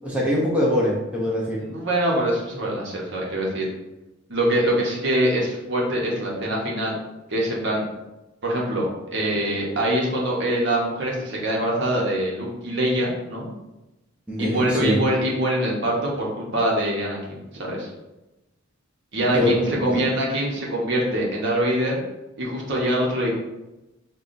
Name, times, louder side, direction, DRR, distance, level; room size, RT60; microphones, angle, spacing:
voice 1, 0.0-1.6 14.3-15.0 19.3-19.6 19.9-20.0, left 1 dB, 5° right, -5 dB, 0.6 m, -22 dB
voice 2, 1.6-3.7 4.3-6.9 7.3-7.8 8.4-13.5 14.4-17.9 19.1-22.0 22.4-23.3, right 1 dB, 60° right, -3 dB, 1.0 m, -24 dB
5.5 x 2.3 x 2.6 m, 0.98 s
head